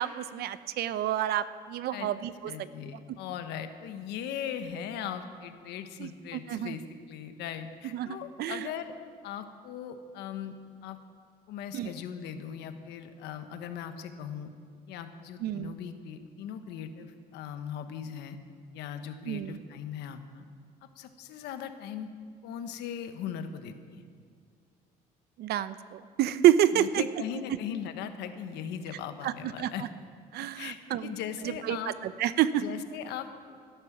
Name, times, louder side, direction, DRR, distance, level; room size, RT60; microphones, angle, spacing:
voice 1, 0.0-2.3 6.0-6.8 7.9-8.7 11.7-11.9 15.4-15.7 19.3-19.6 25.4-27.0 29.2-29.3 29.6-29.7 30.3-31.1 31.7-31.8 32.0-32.6, right 12 dB, 70° right, 14 dB, 0.7 m, -28 dB
voice 2, 2.4-8.9 9.2-10.6 10.8-11.0 11.5-14.5 14.9-18.4 18.7-20.4 21.0-22.1 22.4-24.0 26.7-29.8 30.5-31.9 32.6-33.3, left 8 dB, 85° left, 8 dB, 1.3 m, -39 dB
17.0 x 10.5 x 7.3 m, 2.2 s
cardioid pair, 110°, 17 cm